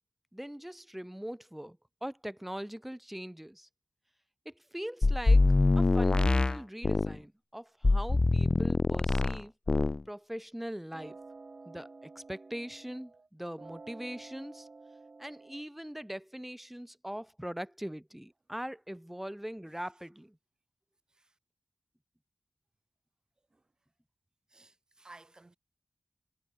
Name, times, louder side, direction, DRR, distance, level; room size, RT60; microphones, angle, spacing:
voice 1, 0.3-3.7 4.5-5.5 5.8-9.5 10.1-11.2 11.7-14.7 15.2-20.4, equal, 5° right, 2.3 m, -41 dB
sound 1, 5.0-7.2 7.8-9.4 9.7-10.0, left 2 dB, 40° left, 1.0 m, -24 dB
sound 2, 10.9-13.3 13.6-15.6, right 3 dB, 50° right, 5.0 m, -50 dB
voice 2, 24.5-25.6, right 2 dB, 35° right, 7.1 m, -56 dB
cardioid pair, 50°, 2 cm